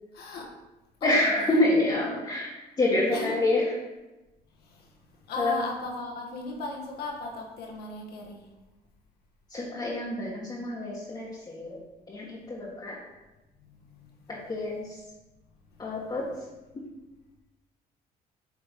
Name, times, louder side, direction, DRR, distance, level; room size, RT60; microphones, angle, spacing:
voice 1, 0.1-0.5 1.0-1.6 3.1-3.4 4.6-4.9 5.3-8.5 13.6-14.1, left 3 dB, 70° left, 0 dB, 1.3 m, -37 dB
voice 2, 1.0-3.6 5.4-5.5 9.5-11.8 12.1-13.0 14.3-15.0 15.8-16.3 16.7-16.8, left 2 dB, 25° left, -6 dB, 1.3 m, -27 dB
8.0 x 3.4 x 3.5 m, 1.1 s
cardioid pair, 110°, 17 cm